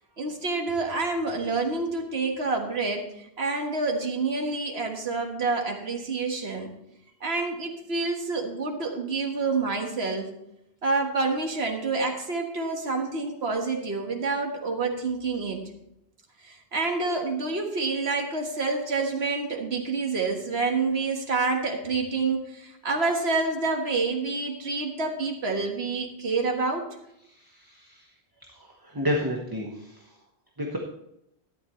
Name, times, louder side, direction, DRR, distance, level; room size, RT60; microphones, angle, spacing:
voice 1, 0.2-6.7 7.2-10.3 10.8-15.6 16.4-26.8, right 3 dB, 80° right, 2 dB, 1.9 m, -28 dB
voice 2, 27.3-28.0 28.8-30.0 30.6-30.8, equal, 20° right, 0 dB, 1.2 m, -30 dB
13.0 x 11.0 x 3.2 m, 0.80 s
omnidirectional pair, 1.1 m